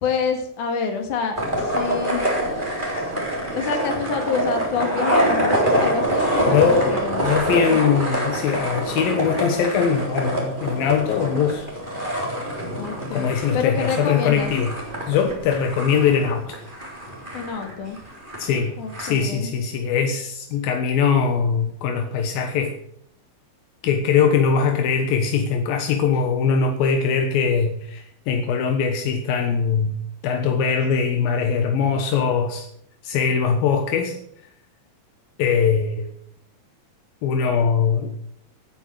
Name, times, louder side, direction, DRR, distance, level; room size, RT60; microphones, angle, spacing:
voice 1, 0.0-2.3 3.5-7.3 7.7-7.9 12.8-14.5 17.3-18.0 18.8-19.5, left 6 dB, 60° left, 4 dB, 3.6 m, -27 dB
sound 1, 1.3-19.1, right 1 dB, 15° right, 3.6 m, -25 dB
voice 2, 6.5-6.9 7.2-11.7 13.1-14.7 15.1-16.6 18.4-22.8 23.8-30.0 30.2-32.7 33.0-34.2 35.4-36.1 37.2-38.1, left 6 dB, 80° left, 5 dB, 3.0 m, -21 dB
16.0 x 9.7 x 6.4 m, 0.69 s
omnidirectional pair, 4.1 m